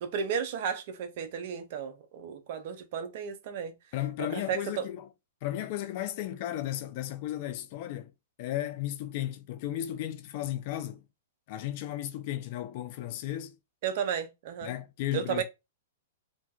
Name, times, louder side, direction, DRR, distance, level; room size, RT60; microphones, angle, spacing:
voice 1, 0.0-3.8 4.2-4.9 13.8-14.7 15.1-15.4, right 7 dB, 55° right, 0.5 m, -33 dB
voice 2, 3.9-5.1 5.4-8.1 8.4-11.0 11.5-13.6 14.6-15.4, left 13 dB, 50° left, 0.4 m, -34 dB
2.6 x 2.3 x 2.3 m
hypercardioid pair, 120°, 0 cm